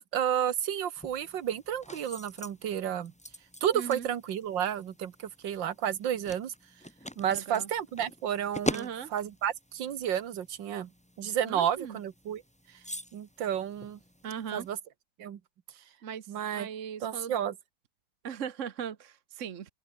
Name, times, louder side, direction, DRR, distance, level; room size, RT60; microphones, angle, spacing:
voice 1, 0.0-3.1 3.6-6.5 7.2-10.9 11.2-12.4 13.1-14.0 14.5-14.8 15.2-15.4 16.3-16.7 17.0-17.5, right 9 dB, 85° right, 2.0 m, -31 dB
sound 1, 1.0-14.7, equal, 5° left, 4.1 m, -43 dB
voice 2, 3.7-4.1 7.3-7.7 8.7-9.1 11.4-12.0 14.2-14.7 16.0-17.3 18.2-19.7, right 8 dB, 50° right, 1.2 m, -39 dB
open air
omnidirectional pair, 2.0 m